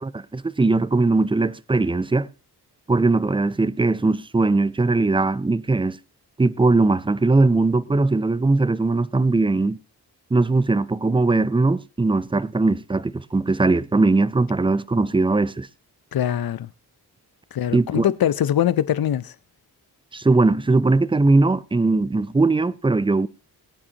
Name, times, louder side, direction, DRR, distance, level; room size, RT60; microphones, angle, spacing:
voice 1, 0.0-2.3 2.9-6.0 6.4-9.8 10.3-15.7 17.7-18.1 20.1-23.3, right 3 dB, 15° right, 0.4 m, -20 dB
voice 2, 16.1-16.7 17.5-19.3, left 10 dB, 60° left, 0.7 m, -22 dB
21.0 x 8.7 x 2.9 m
cardioid pair, 55°, 42 cm